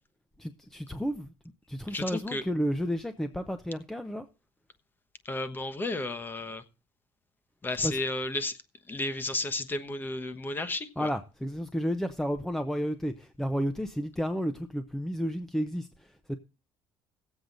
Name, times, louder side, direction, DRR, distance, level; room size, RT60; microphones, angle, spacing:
voice 1, 0.4-1.3 1.7-4.3 7.8-8.0 11.0-16.4, equal, 5° left, 0.7 m, -32 dB
voice 2, 1.9-2.4 5.2-6.6 7.6-8.5 8.9-11.1, left 2 dB, 20° left, 1.2 m, -32 dB
17.5 x 7.9 x 3.9 m
cardioid pair, 125°, 9 cm